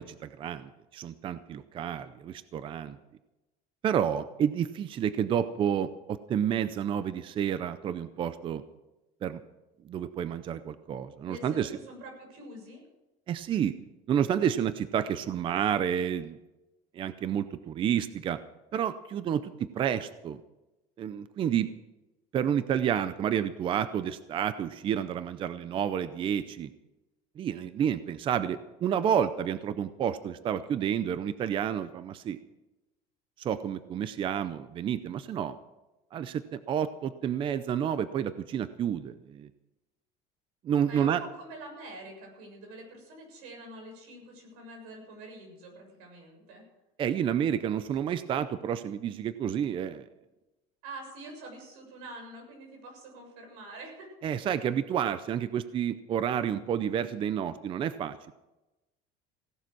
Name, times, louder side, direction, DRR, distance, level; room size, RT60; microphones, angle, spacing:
voice 1, 0.0-3.0 3.8-8.6 9.2-9.4 9.8-11.7 13.3-13.7 14.1-16.4 16.9-18.4 18.7-20.4 21.0-21.7 22.3-26.7 27.4-32.4 33.4-35.6 36.1-39.5 40.6-41.2 47.0-50.0 54.2-58.3, right 9 dB, 30° right, 13 dB, 0.5 m, -30 dB
voice 2, 11.2-12.8 40.9-46.7 50.8-54.1, right 2 dB, 85° right, 2 dB, 7.1 m, -46 dB
16.5 x 11.5 x 6.2 m, 1.0 s
cardioid pair, 160°, 18 cm